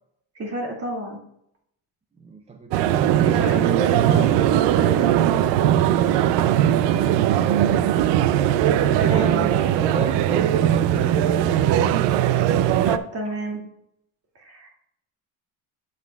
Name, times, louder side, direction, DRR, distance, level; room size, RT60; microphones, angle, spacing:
voice 1, 0.3-1.2 3.2-5.5 9.0-9.7 12.8-13.6 14.4-14.7, right 2 dB, 35° right, -1 dB, 2.3 m, -30 dB
voice 2, 2.2-3.6 6.8-7.9 9.0-11.2, right 4 dB, 15° right, 5 dB, 0.5 m, -32 dB
sound 1, 2.7-13.0, right 11 dB, 85° right, 0.6 m, -19 dB
11.5 x 7.4 x 2.3 m, 0.76 s
cardioid pair, 120°, 42 cm